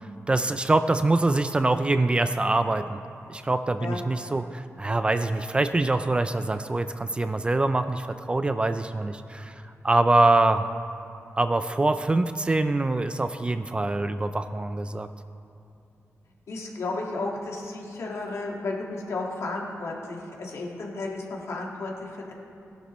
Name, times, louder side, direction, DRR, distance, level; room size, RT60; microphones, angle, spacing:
voice 1, 0.3-3.0 3.3-10.6 11.4-15.1, right 2 dB, 20° right, 9 dB, 0.3 m, -24 dB
voice 2, 16.5-22.3, left 2 dB, 70° left, -1 dB, 1.8 m, -33 dB
17.5 x 11.5 x 3.0 m, 2.5 s
wide cardioid pair, 150°, 5 cm